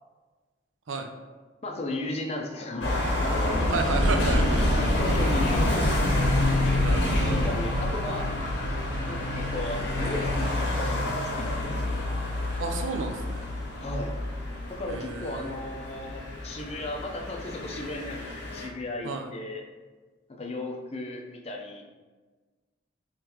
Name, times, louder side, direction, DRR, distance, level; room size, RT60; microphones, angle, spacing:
voice 1, 1.6-4.2 4.7-6.0 7.2-8.3 9.1-12.0 13.8-14.1 14.7-19.6 20.4-21.8, left 2 dB, 35° left, 1 dB, 0.4 m, -35 dB
sound 1, 2.8-18.7, left 1 dB, 70° left, 0.8 m, -27 dB
voice 2, 3.7-4.9 6.8-7.4 12.6-13.5 14.9-15.6 19.0-19.3, right 4 dB, 90° right, 5 dB, 0.5 m, -32 dB
3.8 x 3.1 x 2.9 m, 1.3 s
head